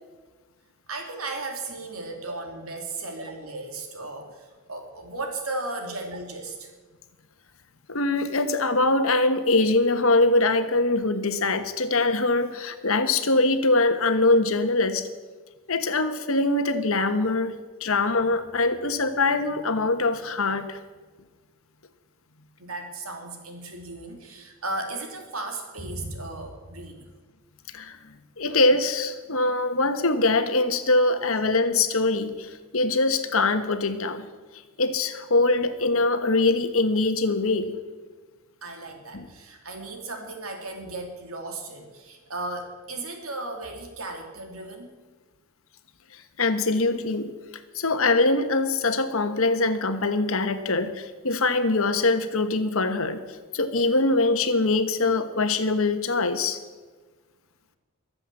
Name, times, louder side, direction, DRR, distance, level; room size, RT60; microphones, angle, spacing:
voice 1, 0.9-6.7 22.6-27.1 38.6-44.9, right 2 dB, 70° right, 3 dB, 3.0 m, -35 dB
voice 2, 7.9-15.1 15.7-17.5 17.8-20.8 27.7-28.0 28.4-34.3 34.8-37.7 39.1-39.3 46.4-47.3 47.7-53.2 53.5-56.6, left 2 dB, 65° left, 9 dB, 1.3 m, -23 dB
22.5 x 7.8 x 7.6 m, 1.3 s
head